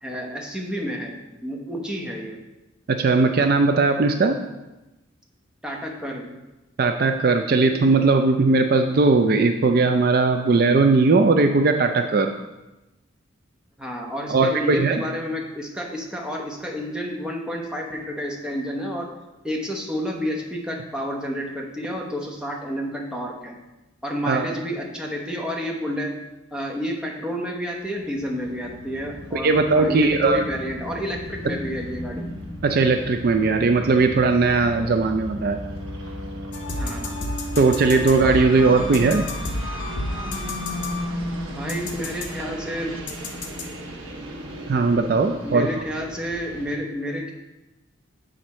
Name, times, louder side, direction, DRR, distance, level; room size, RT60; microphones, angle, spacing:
voice 1, 0.0-2.4 5.6-6.3 13.8-19.1 19.4-23.6 24.0-26.1 26.5-32.3 36.7-37.2 41.5-43.0 45.4-47.3, equal, 5° right, -1 dB, 0.9 m, -30 dB
voice 2, 2.9-4.4 6.8-12.3 14.3-15.0 24.3-24.5 29.3-30.4 32.6-35.6 37.6-39.3 44.7-45.7, right 3 dB, 50° right, 6 dB, 0.4 m, -19 dB
sound 1, 28.0-46.8, equal, 80° right, 1.2 m, -35 dB
sound 2, 36.5-41.3 41.7-42.3 43.1-43.6, left 2 dB, 60° left, 0.9 m, -32 dB
7.9 x 5.1 x 4.2 m, 1.0 s
head